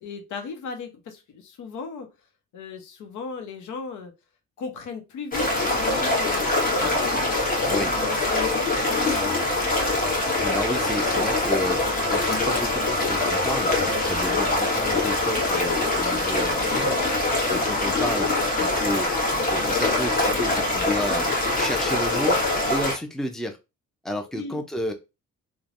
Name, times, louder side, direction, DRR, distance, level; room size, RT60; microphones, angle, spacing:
voice 1, 0.0-2.1 2.5-4.1 4.6-5.5 5.8-7.1 7.7-9.5 16.6-16.9 24.4-24.6, left 5 dB, 80° left, 5 dB, 0.8 m, -36 dB
sound 1, 5.3-23.0, left 2 dB, 30° left, 1.2 m, -23 dB
voice 2, 10.4-17.0 17.5-18.3 18.6-21.3 21.5-22.4 22.7-23.6 24.0-24.9, equal, ahead, 5 dB, 0.5 m, -31 dB
3.1 x 2.2 x 2.5 m, 0.26 s
cardioid pair, 90°, 30 cm